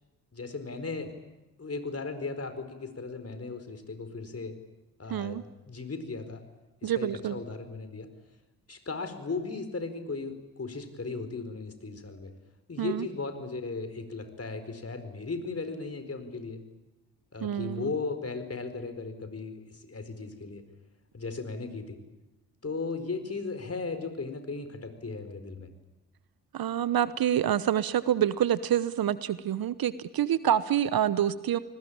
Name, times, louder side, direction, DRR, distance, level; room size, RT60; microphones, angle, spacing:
voice 1, 0.3-1.1 1.6-4.6 5.0-6.4 6.8-8.1 8.7-12.3 12.7-16.6 17.3-20.6 21.1-22.0 22.6-25.7, left 4 dB, 30° left, 9 dB, 4.6 m, -36 dB
voice 2, 5.1-5.4 6.8-7.3 12.8-13.1 17.4-17.9 26.5-31.6, right 10 dB, 50° right, 16 dB, 1.0 m, -27 dB
29.5 x 20.0 x 8.8 m, 1.0 s
hypercardioid pair, 40°, 45 cm